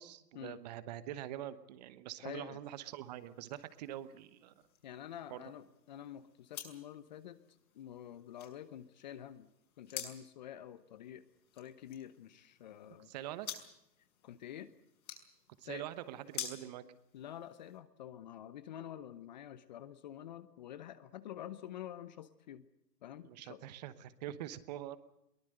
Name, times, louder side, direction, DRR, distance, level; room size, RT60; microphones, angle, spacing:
voice 1, 0.0-4.5 5.3-5.4 13.1-13.5 15.6-16.8 23.2-25.0, right 12 dB, 25° right, 15 dB, 1.0 m, -44 dB
voice 2, 2.2-2.6 4.8-7.4 7.7-9.5 9.8-11.2 11.5-13.1 14.2-14.7 15.6-15.9 17.1-22.7 23.0-23.6 24.3-24.4, left 11 dB, 30° left, 15 dB, 0.8 m, -48 dB
sound 1, 2.6-17.8, left 8 dB, 60° left, 6.0 m, -51 dB
23.0 x 19.0 x 7.9 m, 0.83 s
hypercardioid pair, 145°, 49 cm